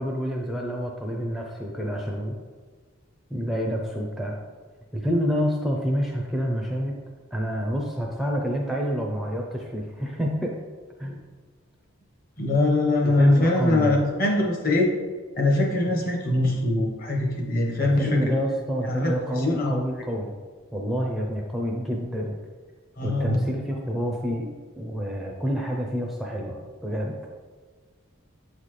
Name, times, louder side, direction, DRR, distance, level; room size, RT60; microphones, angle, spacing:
voice 1, 0.0-2.4 3.3-4.4 4.9-6.9 7.3-10.5 11.0-11.2 13.0-14.0 17.8-20.3 20.7-22.4 23.0-24.5 24.8-27.1, equal, ahead, -1 dB, 0.4 m, -28 dB
voice 2, 12.4-14.9 15.4-18.3 18.8-19.7 23.0-23.4, left 2 dB, 45° left, 0 dB, 1.1 m, -23 dB
7.7 x 4.1 x 3.2 m, 1.5 s
head